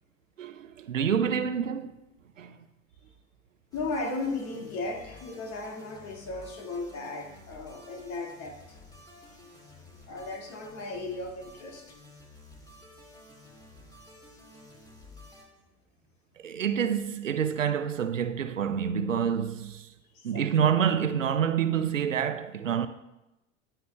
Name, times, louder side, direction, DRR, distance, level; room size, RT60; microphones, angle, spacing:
voice 1, 0.4-1.9 2.4-2.6 16.4-19.9 20.2-22.9, right 8 dB, 80° right, 0.6 m, -27 dB
voice 2, 3.7-8.8 10.1-11.8 20.1-20.7, left 3 dB, 40° left, 1.9 m, -36 dB
sound 1, 3.7-15.4, left 2 dB, 10° left, 2.2 m, -52 dB
14.5 x 10.0 x 2.2 m
figure-of-eight pair, 80°, 38 cm